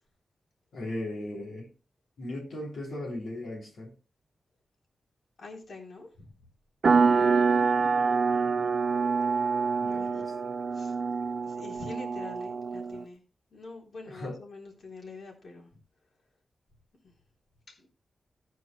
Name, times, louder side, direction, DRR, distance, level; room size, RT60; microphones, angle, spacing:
voice 1, 0.7-1.7 2.2-3.9 7.0-7.6 9.8-10.5 14.0-14.4, left 1 dB, 90° left, 3.2 m, -38 dB
voice 2, 5.4-6.1 9.9-10.2 10.7-11.0 11.4-13.2 13.5-15.7 17.0-17.1 17.7-17.9, left 3 dB, 60° left, 3.5 m, -45 dB
sound 1, 6.8-13.0, right 5 dB, 55° right, 0.7 m, -26 dB
16.0 x 9.2 x 2.2 m
wide cardioid pair, 105°, 0 cm